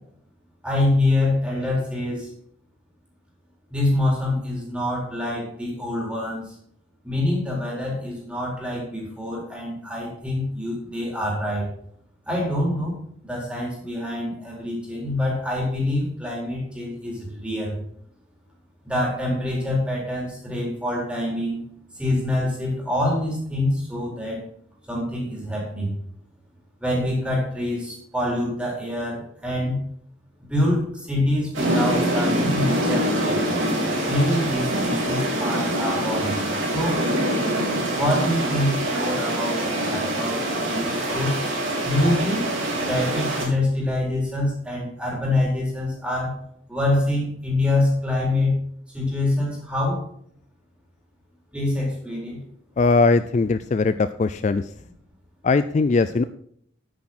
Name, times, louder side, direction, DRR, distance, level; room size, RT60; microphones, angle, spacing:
voice 1, 0.6-2.3 3.7-6.6 7.0-11.7 12.3-17.8 18.8-21.6 21.9-24.4 24.9-25.9 26.8-29.8 30.4-33.6 34.1-37.0 37.9-41.3 41.8-42.5 42.8-46.4 46.7-48.6 48.9-50.0 51.5-52.4, left 1 dB, 5° right, -4 dB, 4.0 m, -25 dB
sound 1, 31.5-43.5, right 1 dB, 85° right, 3.6 m, -24 dB
voice 2, 52.8-54.7 55.4-56.2, left 3 dB, 35° left, 12 dB, 0.3 m, -20 dB
9.7 x 8.7 x 4.3 m, 0.67 s
head